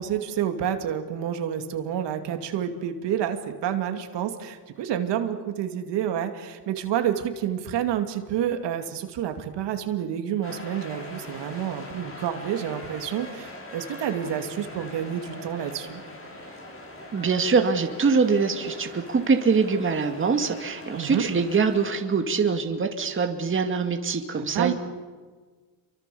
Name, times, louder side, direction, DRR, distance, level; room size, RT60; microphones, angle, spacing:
voice 1, 0.0-16.0 20.9-21.3 24.5-24.7, right 9 dB, 70° right, 6 dB, 2.6 m, -29 dB
sound 1, 10.4-22.0, left 1 dB, 30° left, 7.0 m, -42 dB
voice 2, 17.1-24.7, right 5 dB, 30° right, 4 dB, 2.2 m, -23 dB
29.0 x 24.0 x 7.0 m, 1.5 s
cardioid pair, 115°, 44 cm